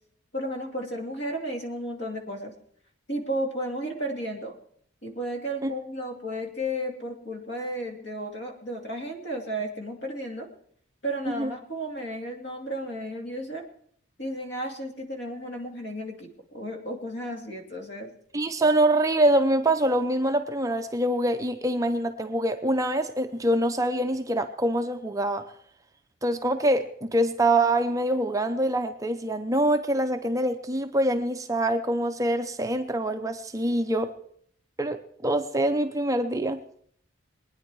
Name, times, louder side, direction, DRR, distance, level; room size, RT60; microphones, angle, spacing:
voice 1, 0.3-2.5 3.1-4.5 5.0-10.5 11.0-13.6 14.2-18.1, equal, 55° left, 2 dB, 2.6 m, -33 dB
voice 2, 18.3-25.4 26.2-34.1 34.8-36.6, right 1 dB, 15° right, 7 dB, 0.6 m, -25 dB
23.0 x 9.7 x 4.7 m, 0.65 s
head